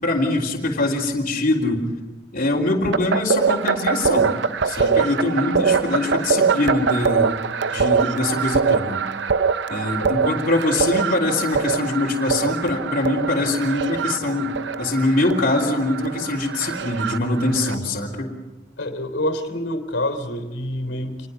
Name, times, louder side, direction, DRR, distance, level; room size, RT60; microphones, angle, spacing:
voice 1, 0.0-1.9 2.3-4.3 4.6-7.4 7.7-9.0 9.7-18.4, left 2 dB, 45° left, -4 dB, 3.5 m, -23 dB
sound 1, 2.9-17.7, right 5 dB, 70° right, 0.7 m, -23 dB
voice 2, 10.0-10.3 18.8-21.3, left 1 dB, 85° left, 9 dB, 3.4 m, -27 dB
27.5 x 21.0 x 5.8 m, 1.1 s
head